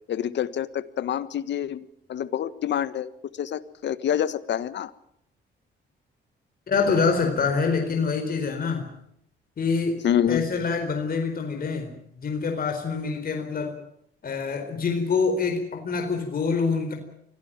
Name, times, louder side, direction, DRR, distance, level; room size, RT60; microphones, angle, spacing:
voice 1, 0.1-3.1 3.4-4.9 10.0-10.5, left 10 dB, 65° left, 14 dB, 1.5 m, -27 dB
voice 2, 6.7-8.9 9.6-10.0 10.3-11.9 12.2-13.8 14.2-16.9, left 5 dB, 50° left, 4 dB, 4.4 m, -25 dB
24.5 x 16.5 x 9.0 m, 0.75 s
cardioid pair, 90°, 20 cm